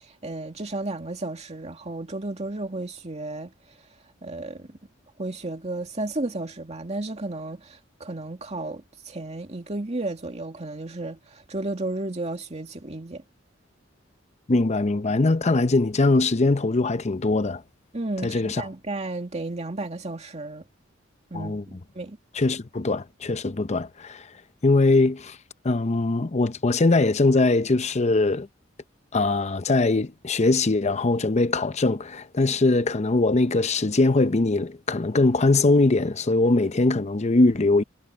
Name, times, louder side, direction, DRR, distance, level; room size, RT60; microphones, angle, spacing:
voice 1, 0.0-3.5 4.2-4.8 5.2-13.2 17.9-20.6 21.3-22.2, right 2 dB, 35° right, 2.3 m, -33 dB
voice 2, 14.5-17.6 18.2-18.6 21.3-21.6 22.3-24.2 24.6-25.4 25.6-28.5 29.1-37.8, left 2 dB, 35° left, 0.7 m, -21 dB
head